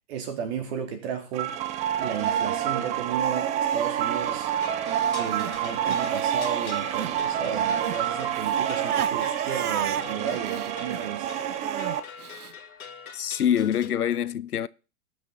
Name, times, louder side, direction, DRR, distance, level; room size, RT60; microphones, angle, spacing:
voice 1, 0.1-1.6 1.9-4.5 5.2-11.3, right 7 dB, 45° right, 3.4 m, -34 dB
sound 1, 1.3-12.0, right 10 dB, 15° right, 0.6 m, -28 dB
sound 2, 4.6-13.9, left 7 dB, 70° left, 2.2 m, -44 dB
Crying sobbing, 5.0-7.2 7.5-12.5, right 9 dB, 80° right, 0.6 m, -35 dB
voice 2, 13.1-14.7, left 9 dB, 85° left, 0.6 m, -25 dB
18.5 x 6.4 x 4.2 m
figure-of-eight pair, 110°, 44 cm